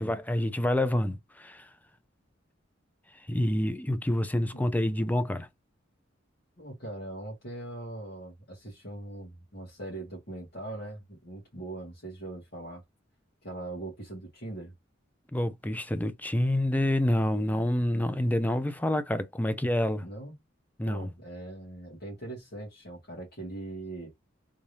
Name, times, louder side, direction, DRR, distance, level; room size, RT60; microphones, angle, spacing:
voice 1, 0.0-1.7 3.3-5.5 15.3-20.1 20.8-21.1, left 1 dB, 10° left, 0.5 m, -27 dB
voice 2, 6.6-12.8 13.4-14.7 20.0-20.4 20.8-24.1, right 2 dB, 55° left, 2.0 m, -41 dB
3.6 x 3.3 x 2.8 m
head